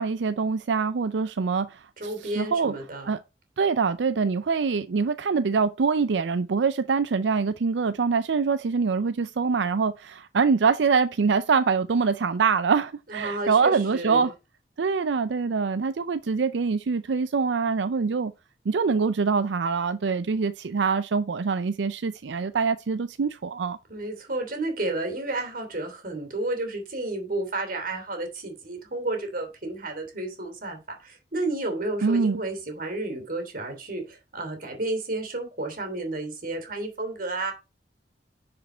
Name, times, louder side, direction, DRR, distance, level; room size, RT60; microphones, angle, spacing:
voice 1, 0.0-2.7 3.1-3.2 3.6-14.3 14.8-18.3 18.7-23.8 32.0-32.4, right 5 dB, 90° right, 0.5 m, -24 dB
voice 2, 2.0-3.2 13.1-14.3 23.9-37.5, right 2 dB, 55° right, 3.1 m, -31 dB
10.0 x 5.2 x 4.4 m
head